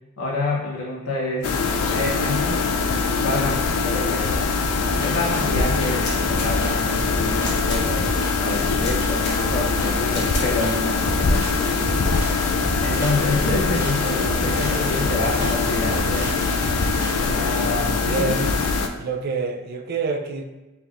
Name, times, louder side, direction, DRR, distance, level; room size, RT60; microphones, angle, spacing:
voice 1, 0.2-1.5 1.9-2.6 3.1-4.4 5.0-8.1 8.4-11.7 12.8-16.3 17.2-18.3, left 2 dB, 70° left, -4 dB, 0.9 m, -28 dB
sound 1, 1.4-18.9, left 4 dB, 85° left, 0.4 m, -23 dB
sound 2, 4.6-17.8, right 1 dB, 10° right, 1.2 m, -32 dB
sound 3, 6.0-6.5 7.3-7.8 8.7-9.4 10.1-10.5, left 2 dB, 50° left, 1.3 m, -34 dB
voice 2, 14.4-15.1 17.9-18.6 19.0-20.4, right 4 dB, 45° right, 4 dB, 0.4 m, -28 dB
4.6 x 3.5 x 2.4 m, 1.1 s
head